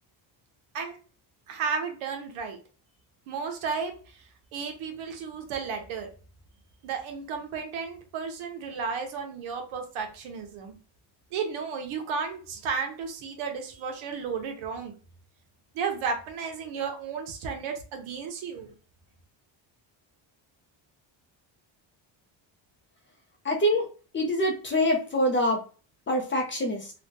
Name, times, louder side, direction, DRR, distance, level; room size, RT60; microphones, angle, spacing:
voice 1, 1.5-2.6 3.3-3.9 4.5-6.1 6.8-10.7 11.3-14.9 15.7-18.7, right 5 dB, 80° right, 4 dB, 1.0 m, -33 dB
voice 2, 23.4-23.9 24.1-25.6 26.1-26.9, equal, 25° left, 2 dB, 0.6 m, -25 dB
3.2 x 2.3 x 2.7 m, 0.37 s
cardioid pair, 145°, 48 cm